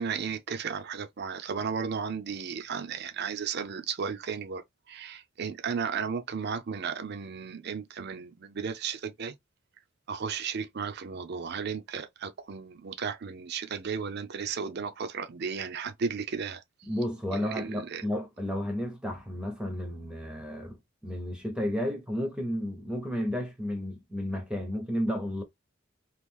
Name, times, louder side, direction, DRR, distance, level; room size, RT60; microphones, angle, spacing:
voice 1, 0.0-9.4 10.1-16.6 17.3-18.1, right 6 dB, 55° right, 0.5 m, -34 dB
voice 2, 16.8-25.4, equal, 5° right, 0.7 m, -32 dB
3.0 x 2.5 x 3.5 m
head